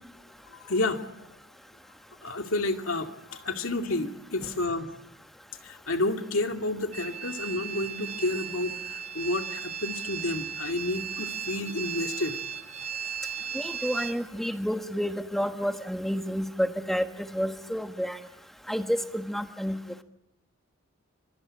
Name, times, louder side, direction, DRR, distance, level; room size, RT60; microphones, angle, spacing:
voice 1, 0.5-1.1 2.2-4.9 5.6-12.4, left 2 dB, 90° left, 5 dB, 2.4 m, -30 dB
sound 1, 6.9-14.1, right 8 dB, 30° right, 1.1 m, -36 dB
voice 2, 13.5-18.2 18.7-19.8, equal, ahead, 7 dB, 1.3 m, -30 dB
26.0 x 24.5 x 8.7 m, 0.83 s
head